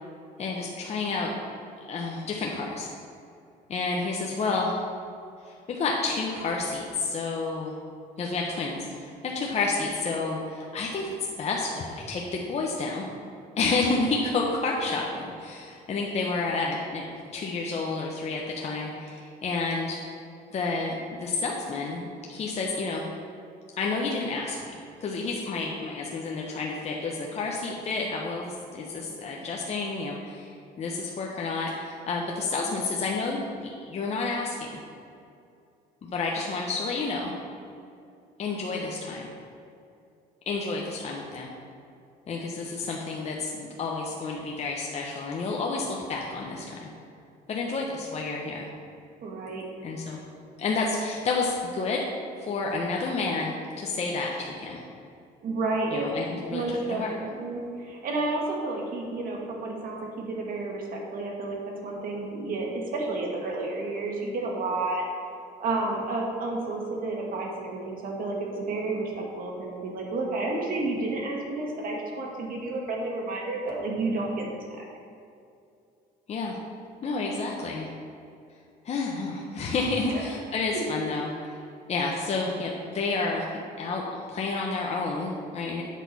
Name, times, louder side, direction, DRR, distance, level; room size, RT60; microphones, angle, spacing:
voice 1, 0.4-1.3 1.8-2.9 3.7-4.8 5.4-7.8 8.2-13.0 13.6-17.1 17.3-20.0 20.5-23.1 23.8-30.5 30.8-34.8 36.0-37.3 38.4-39.3 40.5-41.5 42.3-46.9 47.5-48.7 49.8-50.2 50.6-52.0 52.4-54.9 55.9-57.1 76.3-76.6 77.0-77.9 78.8-81.5 81.9-85.8, left 3 dB, 40° left, -1 dB, 0.9 m, -30 dB
voice 2, 49.2-49.7 55.4-61.6 61.8-65.1 65.6-74.8 80.1-80.3, right 2 dB, 55° right, -1 dB, 1.7 m, -31 dB
8.2 x 6.0 x 4.1 m, 2.5 s
cardioid pair, 110°, 17 cm